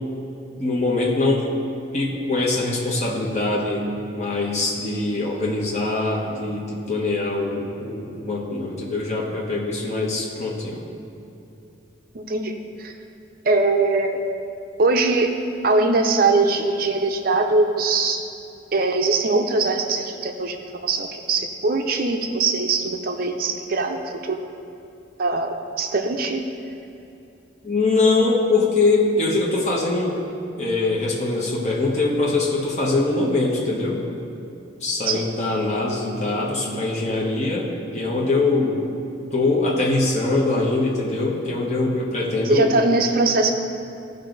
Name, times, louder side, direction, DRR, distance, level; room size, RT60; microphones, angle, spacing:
voice 1, 0.6-1.5 1.9-10.8 27.6-30.2 30.6-34.0 34.8-38.8 39.3-42.7, left 2 dB, 35° left, -4 dB, 1.1 m, -23 dB
voice 2, 12.1-12.9 13.4-14.2 14.8-15.3 15.6-18.2 18.7-20.6 20.8-24.5 25.2-26.4 35.1-35.3 42.4-43.5, right 3 dB, 45° right, 4 dB, 0.5 m, -21 dB
15.5 x 5.4 x 3.9 m, 2.7 s
head